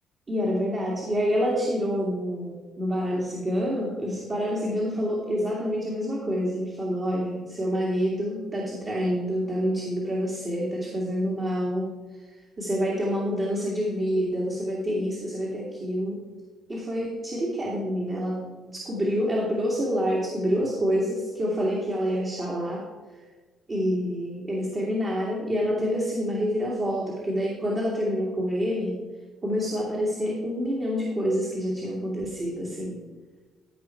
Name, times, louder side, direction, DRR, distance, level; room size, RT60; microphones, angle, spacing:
voice 1, 0.3-16.2 16.7-22.8 23.1-23.2 23.7-29.0 29.4-33.0, equal, 35° right, -4 dB, 2.4 m, -27 dB
14.0 x 5.3 x 4.6 m, 1.4 s
cardioid pair, 90°, 0 cm